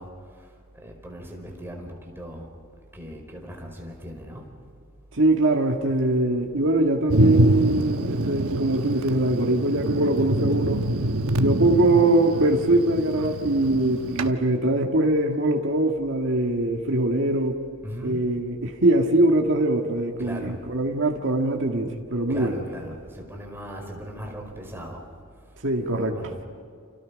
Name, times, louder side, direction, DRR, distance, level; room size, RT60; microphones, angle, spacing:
voice 1, 0.0-2.5 2.9-4.5 17.8-18.4 20.2-20.6 22.3-25.1 26.0-26.4, equal, 10° right, 1 dB, 4.8 m, -39 dB
voice 2, 5.1-10.9 11.4-17.6 18.0-22.6 25.6-26.2, right 2 dB, 60° right, 1 dB, 1.8 m, -22 dB
Thunder, 7.1-14.3, right 1 dB, 80° right, 1.2 m, -25 dB
29.5 x 29.0 x 5.3 m, 2.2 s
head